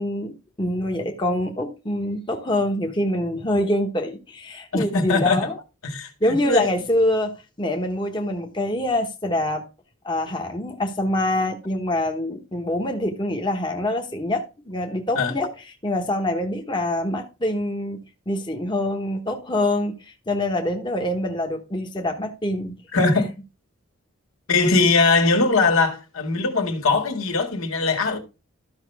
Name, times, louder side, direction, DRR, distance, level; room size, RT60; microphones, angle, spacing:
voice 1, 0.0-5.6 6.2-9.6 10.0-15.5 15.8-22.8, left 1 dB, 20° left, 1.1 m, -25 dB
voice 2, 4.7-5.5 5.8-6.1 6.4-6.7 15.2-15.3 22.9-23.2 24.5-28.2, left 3 dB, 80° left, 2.0 m, -20 dB
13.5 x 5.7 x 3.5 m
head